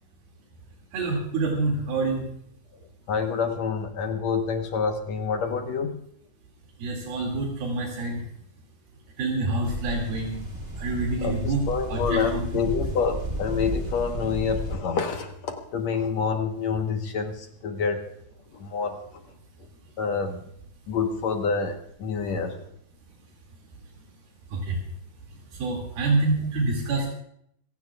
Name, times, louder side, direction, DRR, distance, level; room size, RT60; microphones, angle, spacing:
voice 1, 0.9-2.3 6.8-8.2 9.2-10.4 10.8-11.6 11.9-12.4 24.5-24.8 25.6-27.1, right 3 dB, 90° right, -1 dB, 4.3 m, -26 dB
voice 2, 3.1-6.0 11.2-18.0 18.5-19.2 20.0-20.4 20.9-22.6, left 5 dB, 65° left, 4 dB, 2.0 m, -27 dB
sound 1, 9.6-14.8, right 1 dB, 25° right, 1.3 m, -33 dB
26.0 x 16.5 x 2.4 m, 0.69 s
omnidirectional pair, 4.2 m